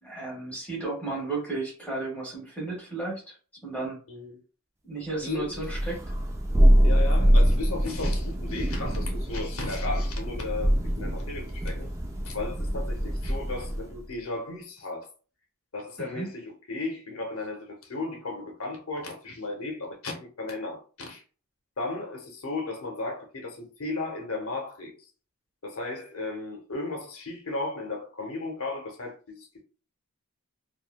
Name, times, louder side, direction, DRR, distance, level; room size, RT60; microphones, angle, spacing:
voice 1, 0.0-3.3 3.6-4.0 4.8-6.0 16.0-16.3, right 3 dB, 5° left, 1.1 m, -33 dB
voice 2, 4.1-4.4 5.2-5.6 6.8-11.9 12.2-15.1 15.7-21.2 21.8-24.9 25.6-29.6, left 3 dB, 65° left, 0.8 m, -35 dB
Thunder, 5.5-14.0, equal, 15° right, 0.4 m, -24 dB
3.1 x 2.4 x 2.2 m
head